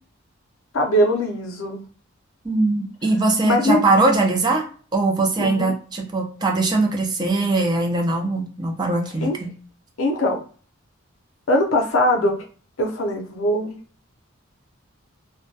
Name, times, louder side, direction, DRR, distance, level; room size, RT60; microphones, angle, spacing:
voice 1, 0.7-1.8 3.4-3.8 5.4-5.7 9.2-9.4 10.0-10.4 11.5-12.4 12.8-13.8, left 1 dB, 70° left, 3 dB, 0.6 m, -21 dB
voice 2, 2.4-4.6 4.9-9.5, right 2 dB, 20° right, 1 dB, 0.4 m, -21 dB
2.2 x 2.2 x 2.6 m, 0.42 s
head